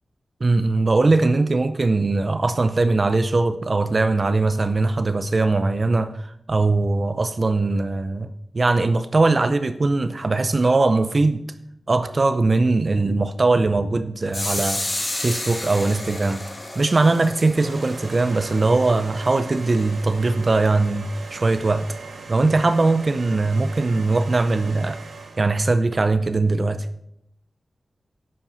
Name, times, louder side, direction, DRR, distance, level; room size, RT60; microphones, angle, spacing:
voice 1, 0.4-11.4 11.9-14.9 15.2-16.4 16.8-22.0 22.3-25.0 25.4-26.9, right 3 dB, 35° right, 0.5 m, -20 dB
sound 1, 14.3-20.0, left 1 dB, 30° left, 2.1 m, -32 dB
sound 2, 17.5-25.6, right 4 dB, 70° right, 2.1 m, -39 dB
10.5 x 7.7 x 5.6 m
wide cardioid pair, 130°, 0 cm